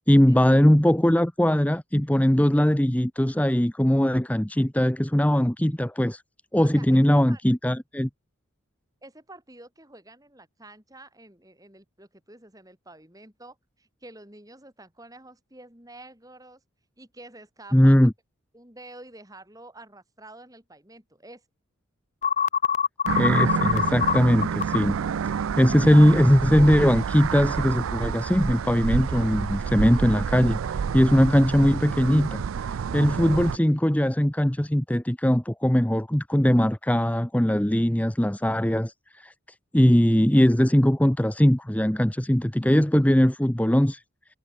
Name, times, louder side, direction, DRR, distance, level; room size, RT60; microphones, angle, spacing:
voice 1, 0.1-6.2 6.5-8.1 17.7-18.1 23.2-25.0 25.2-39.3 39.7-44.0, equal, 5° left, 0.7 m, -20 dB
voice 2, 6.6-7.4 9.0-16.6 17.0-18.1 18.5-21.4, right 2 dB, 15° right, 4.8 m, -48 dB
sound 1, 22.2-24.8, left 7 dB, 35° left, 0.4 m, -23 dB
sound 2, 23.1-33.6, right 7 dB, 75° right, 0.4 m, -28 dB
head